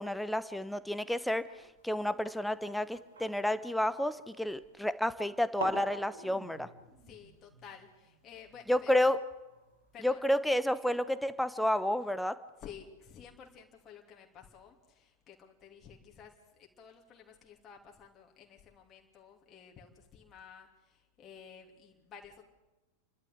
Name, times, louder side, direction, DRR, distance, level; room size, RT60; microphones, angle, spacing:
voice 1, 0.0-1.4 1.8-6.7 8.7-9.2 10.0-12.4, left 1 dB, ahead, 13 dB, 1.1 m, -30 dB
sound 1, 1.8-4.7 5.3-5.4 5.6-10.2, right 3 dB, 70° right, 5.5 m, -47 dB
voice 2, 7.1-8.9 9.9-10.2 12.6-22.4, left 7 dB, 30° left, 1 dB, 3.0 m, -53 dB
29.5 x 12.5 x 8.3 m, 1.1 s
figure-of-eight pair, 90°, 0 cm